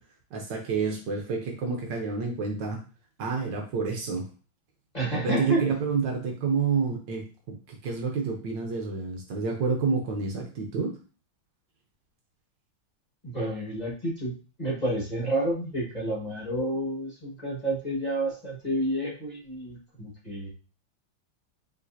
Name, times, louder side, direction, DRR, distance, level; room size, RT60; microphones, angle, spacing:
voice 1, 0.3-2.8 3.2-4.3 5.2-11.0, right 5 dB, 70° right, 2 dB, 1.3 m, -29 dB
voice 2, 4.9-5.6 13.2-20.5, right 1 dB, 25° left, -6 dB, 1.3 m, -30 dB
5.3 x 3.3 x 2.6 m, 0.35 s
omnidirectional pair, 2.2 m